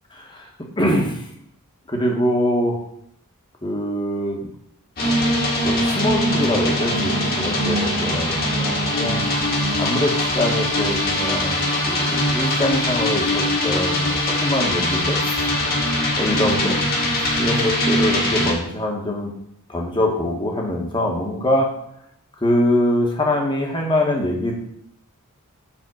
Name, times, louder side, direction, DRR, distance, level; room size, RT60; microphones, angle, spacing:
voice 1, 0.1-0.4 0.8-1.2 1.9-2.8 3.6-4.5 5.0-5.1 5.6-9.2 9.8-15.2 16.2-16.8 17.1-19.3 19.7-21.7 22.4-24.5, left 1 dB, 20° left, 0 dB, 1.4 m, -23 dB
sound 1, 5.0-18.5, left 1 dB, 45° left, 1.7 m, -21 dB
7.2 x 3.8 x 6.2 m, 0.73 s
head